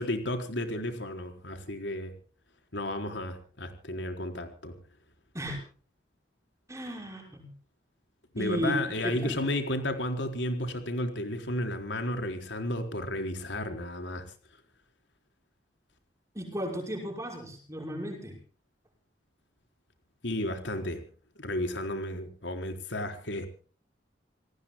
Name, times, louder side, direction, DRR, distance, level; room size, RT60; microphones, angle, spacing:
voice 1, 0.0-2.1 2.7-4.8 8.3-14.2 20.2-21.0 21.4-23.5, left 1 dB, 80° left, 5 dB, 4.1 m, -33 dB
voice 2, 6.7-7.5 8.4-9.4 16.3-18.4, right 1 dB, 15° right, 1 dB, 6.0 m, -34 dB
28.5 x 19.0 x 2.2 m, 0.40 s
head